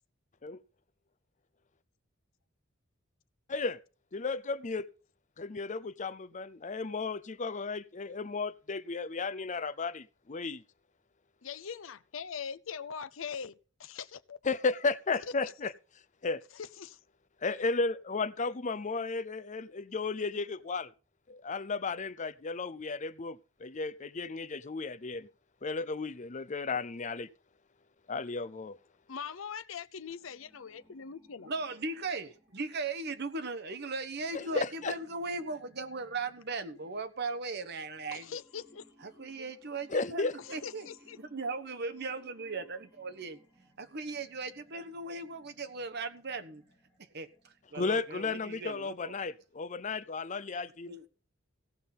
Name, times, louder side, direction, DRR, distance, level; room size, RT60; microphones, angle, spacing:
voice 1, 3.5-3.8 4.1-4.9 5.4-10.6 14.4-15.7 16.2-16.4 17.4-20.9 21.3-25.3 25.6-27.3 28.1-28.8 34.3-34.9 39.9-40.3 47.7-50.9, left 4 dB, 40° left, 0.6 m, -34 dB
voice 2, 11.4-13.5 13.8-14.4 15.4-15.5 16.5-17.0 29.1-31.5 38.1-38.8 40.4-41.2, left 7 dB, 80° left, 0.6 m, -42 dB
sound 1, 30.0-47.9, equal, 15° right, 3.5 m, -64 dB
voice 3, 31.4-38.3 39.0-40.9 41.2-43.4 43.8-46.6 47.0-49.1 50.8-51.1, right 3 dB, 55° right, 1.2 m, -38 dB
16.5 x 5.9 x 5.5 m
head